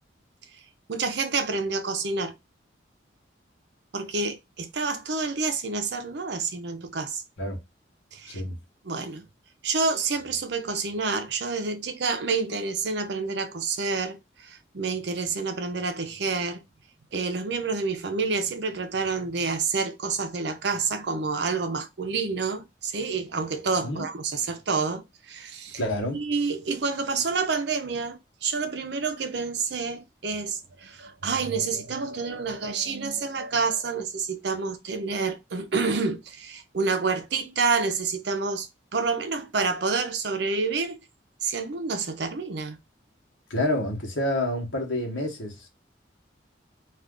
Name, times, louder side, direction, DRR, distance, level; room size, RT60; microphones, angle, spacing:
voice 1, 0.9-2.3 3.9-7.2 8.1-8.4 8.8-9.2 9.6-16.6 17.1-25.8 26.1-41.0 41.4-42.8, right 4 dB, 65° right, 0.6 m, -28 dB
voice 2, 8.3-8.6 23.8-24.1 25.8-26.2 43.5-45.7, left 1 dB, 85° left, 1.0 m, -28 dB
2.4 x 2.4 x 3.5 m
head